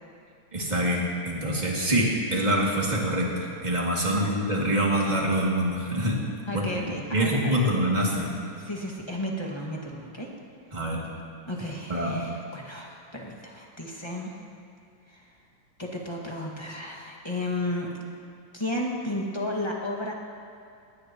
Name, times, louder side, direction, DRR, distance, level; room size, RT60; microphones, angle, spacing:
voice 1, 0.5-6.2 6.5-8.3 10.7-11.0 11.9-12.2, right 1 dB, 15° right, -4 dB, 2.4 m, -25 dB
voice 2, 6.5-7.5 8.6-10.3 11.5-14.4 15.1-15.3 15.8-17.9 18.5-20.1, left 1 dB, 10° left, -3 dB, 1.3 m, -33 dB
21.0 x 19.0 x 3.1 m, 2.5 s
omnidirectional pair, 3.6 m